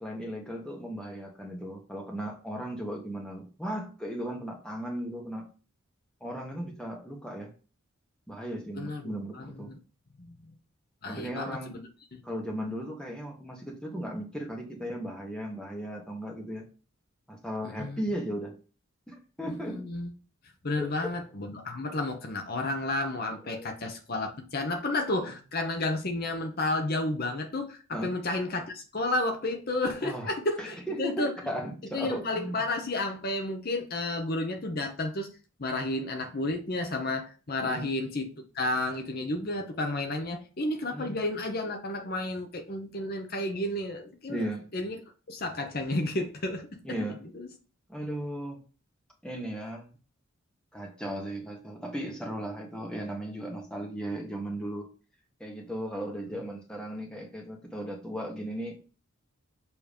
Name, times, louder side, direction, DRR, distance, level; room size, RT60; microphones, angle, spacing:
voice 1, 0.0-5.5 6.2-7.5 8.3-9.7 11.1-11.7 12.2-16.7 17.3-18.5 19.1-19.9 20.8-20.9 23.5-23.7 25.2-25.3 27.9-28.1 30.0-30.3 30.6-32.6 37.6-37.9 40.9-41.2 44.3-44.7 46.8-47.2 47.9-48.6 49.2-49.9 50.7-54.9 55.4-58.8, right 1 dB, 5° left, 1.2 m, -36 dB
voice 2, 8.7-9.8 10.2-10.5 11.0-11.8 12.1-12.2 17.8-18.0 19.5-20.1 20.6-31.3 31.9-35.3 35.6-44.5 44.7-45.0 45.3-47.0 47.3-47.5 56.3-56.4, left 2 dB, 45° left, 0.8 m, -32 dB
7.1 x 3.0 x 5.1 m
head